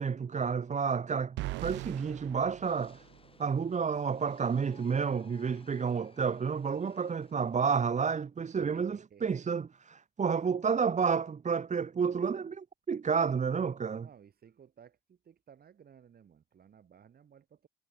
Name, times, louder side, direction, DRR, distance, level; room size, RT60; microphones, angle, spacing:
voice 1, 0.0-3.0 3.4-14.1, right 6 dB, 40° right, 1.2 m, -30 dB
sound 1, 1.4-3.5, right 19 dB, 85° right, 0.8 m, -40 dB
sound 2, 2.6-8.1, left 3 dB, 30° left, 5.4 m, -60 dB
voice 2, 8.5-9.5 13.9-17.7, right 8 dB, 60° right, 5.9 m, -58 dB
supercardioid pair, 55°, 18 cm